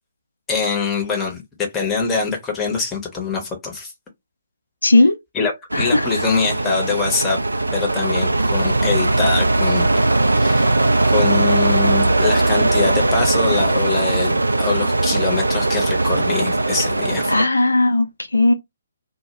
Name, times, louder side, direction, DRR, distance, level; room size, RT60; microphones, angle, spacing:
voice 1, 0.5-3.9 5.3-7.4 7.7-9.9 10.4-10.8 11.0-17.3, left 5 dB, 15° left, 0.7 m, -24 dB
voice 2, 4.8-5.2 5.7-6.1 17.3-18.5, left 2 dB, 75° left, 0.4 m, -16 dB
sound 1, 5.7-17.5, right 2 dB, 75° right, 0.3 m, -19 dB
2.2 x 2.1 x 2.8 m
figure-of-eight pair, 135°, 0 cm